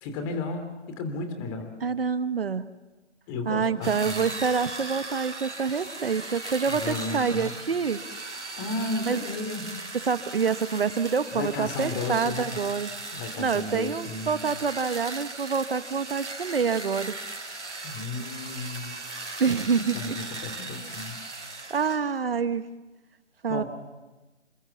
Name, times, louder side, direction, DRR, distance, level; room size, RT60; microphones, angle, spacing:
voice 1, 0.0-1.7 3.3-4.2 6.7-7.5 8.6-9.7 11.3-12.6 13.1-14.4 17.8-19.0 19.7-21.2 23.5-23.6, left 3 dB, 20° left, 7 dB, 2.9 m, -33 dB
voice 2, 1.8-2.6 3.4-8.0 9.0-9.2 9.9-12.9 13.4-17.1 19.4-20.2 21.7-22.6 23.4-23.6, right 6 dB, 50° right, 13 dB, 1.2 m, -27 dB
sound 1, 3.8-22.0, right 2 dB, 75° right, 4.3 m, -38 dB
28.5 x 24.5 x 7.1 m, 1.2 s
figure-of-eight pair, 145°, 36 cm